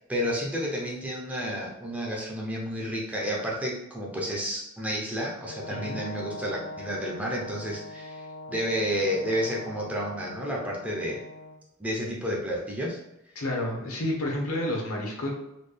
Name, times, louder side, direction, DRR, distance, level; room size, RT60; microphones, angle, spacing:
voice 1, 0.0-11.2 11.8-13.0, equal, 5° right, -3 dB, 0.6 m, -31 dB
Brass instrument, 5.5-11.6, left 2 dB, 60° left, 0.4 m, -41 dB
voice 2, 13.3-15.3, left 1 dB, 75° left, -1 dB, 1.0 m, -30 dB
4.2 x 2.3 x 3.3 m, 0.85 s
head